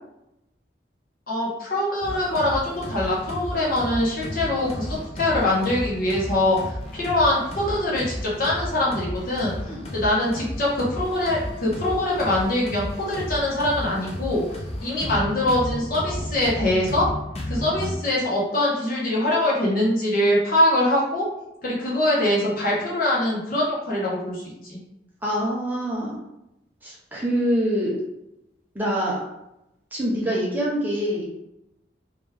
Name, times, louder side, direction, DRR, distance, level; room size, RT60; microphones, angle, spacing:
voice 1, 1.3-14.4 14.8-17.1 17.5-21.2 21.6-24.8, left 1 dB, 50° left, -5 dB, 1.2 m, -23 dB
sound 1, 2.0-17.9, left 1 dB, 35° left, 0.6 m, -33 dB
voice 2, 25.2-26.2 26.8-28.0 28.7-29.2 29.9-31.2, equal, 10° right, -5 dB, 0.8 m, -25 dB
3.4 x 3.2 x 3.5 m, 0.86 s
head